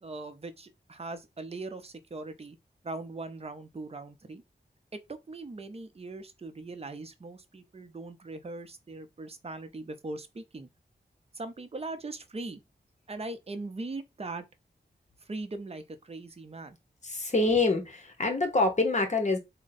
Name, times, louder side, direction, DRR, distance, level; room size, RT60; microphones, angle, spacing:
voice 1, 0.0-2.6 2.8-4.4 4.9-10.7 11.3-12.6 13.1-14.5 15.3-16.8, right 2 dB, 35° right, 0.6 m, -40 dB
voice 2, 17.0-19.4, left 3 dB, 40° left, 1.1 m, -26 dB
3.6 x 2.2 x 4.0 m
wide cardioid pair, 60°, 18 cm